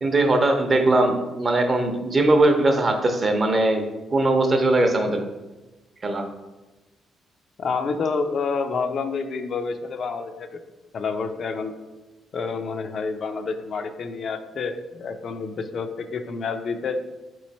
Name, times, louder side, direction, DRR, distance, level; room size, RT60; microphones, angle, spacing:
voice 1, 0.0-3.8 4.1-5.2 6.0-6.2, right 2 dB, 35° right, 4 dB, 0.7 m, -20 dB
voice 2, 7.6-10.6 10.9-11.7 12.3-17.0, left 4 dB, 55° left, 7 dB, 0.4 m, -28 dB
4.1 x 3.1 x 4.1 m, 1.1 s
cardioid pair, 90°, 0 cm